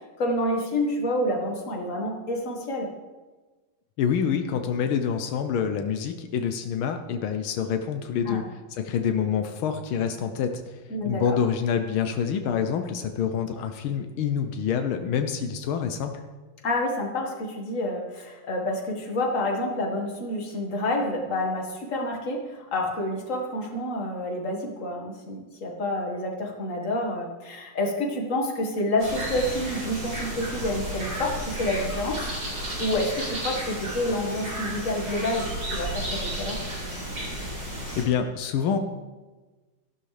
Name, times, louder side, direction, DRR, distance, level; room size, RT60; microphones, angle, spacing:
voice 1, 0.2-2.9 8.3-8.4 10.9-11.4 16.6-32.3 32.8-35.5 35.7-36.6, left 1 dB, 40° left, 1 dB, 2.0 m, -28 dB
voice 2, 4.0-8.4 8.7-10.6 11.0-16.2 38.0-38.8, left 7 dB, 80° left, 7 dB, 1.6 m, -26 dB
sound 1, 29.0-38.0, right 1 dB, 70° right, 5.1 m, -33 dB
13.5 x 12.0 x 3.3 m, 1.3 s
omnidirectional pair, 2.2 m